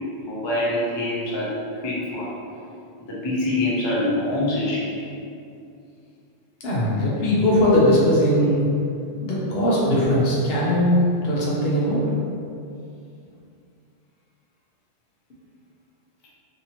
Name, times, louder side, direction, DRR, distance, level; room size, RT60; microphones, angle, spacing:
voice 1, 0.2-1.5 1.8-2.4 3.0-4.9, left 1 dB, 35° left, -6 dB, 0.5 m, -25 dB
voice 2, 6.6-8.7 9.2-12.0, left 1 dB, 70° left, -6 dB, 0.9 m, -20 dB
2.8 x 2.6 x 2.8 m, 2.5 s
omnidirectional pair, 1.1 m